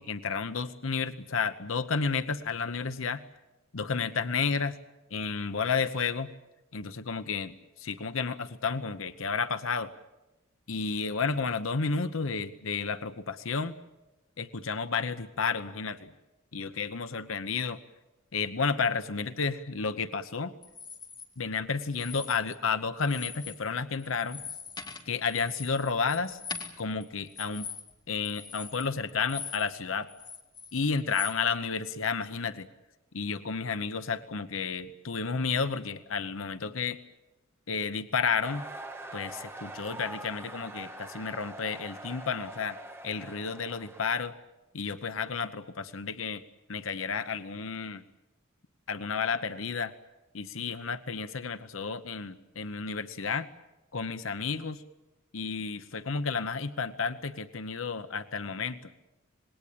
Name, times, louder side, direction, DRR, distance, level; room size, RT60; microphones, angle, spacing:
voice 1, 0.0-3.2 3.7-4.8 5.1-6.3 6.7-9.9 10.7-13.8 14.4-16.1 16.5-17.8 18.3-20.5 21.4-24.4 25.1-26.4 26.8-27.7 28.1-30.1 30.7-32.7 33.1-37.0 37.7-38.7 39.1-42.8 43.0-44.3 44.7-46.4 46.7-48.0 48.9-49.9 50.3-53.5 53.9-54.8 55.3-58.8, left 5 dB, 75° left, 11 dB, 0.9 m, -31 dB
sound 1, 20.6-21.3 21.9-22.7 23.0-23.6 23.9-29.8 30.1-31.4, left 6 dB, 20° left, 2.5 m, -42 dB
sound 2, 38.4-44.2, right 2 dB, 10° right, 1.8 m, -44 dB
26.5 x 20.5 x 8.6 m, 1.0 s
head